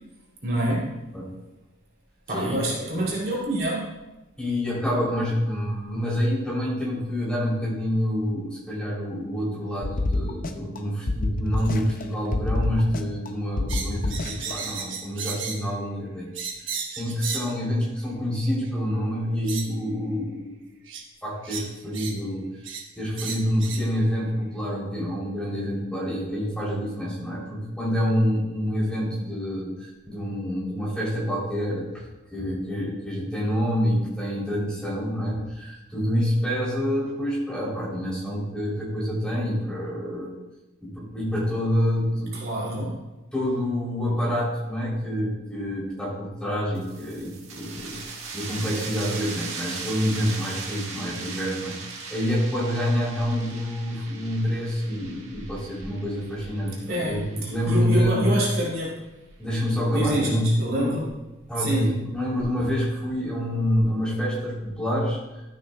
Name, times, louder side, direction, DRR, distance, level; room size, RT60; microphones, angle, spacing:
voice 1, 0.4-1.0 2.3-3.9 42.3-43.0 56.9-59.0 59.9-61.1 61.6-61.9, right 1 dB, 50° right, -5 dB, 2.6 m, -27 dB
voice 2, 4.4-16.3 16.6-20.5 21.2-22.5 23.0-40.4 40.8-42.3 42.6-42.8 43.3-48.0 48.3-58.4 59.4-61.0 61.5-65.2, equal, 5° left, -6 dB, 3.1 m, -27 dB
sound 1, 9.8-10.8 11.1-12.0 12.3-13.3 13.6-14.5, left 2 dB, 45° left, 0.6 m, -27 dB
sound 2, 13.7-15.7 16.3-17.5 18.6-18.7 19.5-19.7 20.9-21.0 21.4-22.2 22.6-22.9 23.2-23.9, right 6 dB, 70° right, 1.2 m, -34 dB
sound 3, 46.8-58.1, right 4 dB, 85° right, 1.6 m, -39 dB
12.5 x 8.5 x 2.2 m, 1.0 s
head